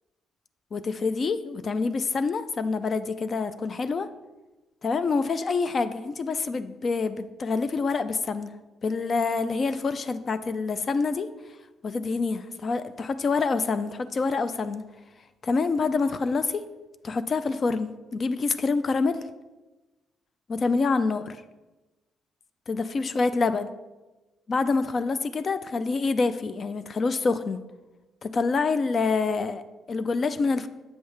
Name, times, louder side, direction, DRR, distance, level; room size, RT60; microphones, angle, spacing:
voice 1, 0.7-4.1 4.8-8.5 8.8-11.3 11.8-14.8 15.4-16.6 17.0-19.2 20.5-21.4 22.7-23.7 24.5-27.6 28.2-29.6 29.9-30.7, left 4 dB, 45° left, 12 dB, 0.4 m, -26 dB
7.9 x 5.4 x 3.2 m, 1.1 s
cardioid pair, 90°, 0 cm